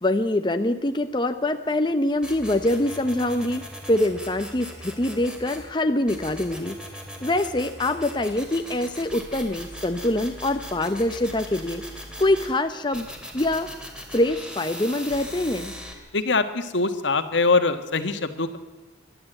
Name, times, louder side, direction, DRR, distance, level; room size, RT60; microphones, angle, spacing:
voice 1, 0.0-6.8 7.2-11.8 12.2-13.1 13.3-13.7 14.1-15.7, left 1 dB, 25° left, 8 dB, 0.7 m, -24 dB
sound 1, 2.2-5.7 6.1-12.5 12.9-15.9, equal, 5° right, 2.7 m, -39 dB
voice 2, 16.1-18.6, left 3 dB, 80° left, 9 dB, 1.6 m, -23 dB
25.0 x 12.0 x 8.9 m, 1.2 s
head